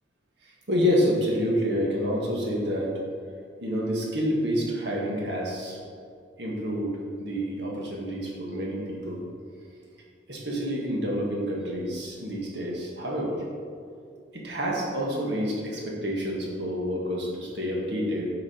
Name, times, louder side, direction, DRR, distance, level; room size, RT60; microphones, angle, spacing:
voice 1, 0.4-2.9 3.6-5.8 6.4-9.2 10.3-13.4 14.3-18.3, equal, 65° right, -3 dB, 1.6 m, -28 dB
7.2 x 4.9 x 5.0 m, 2.2 s
head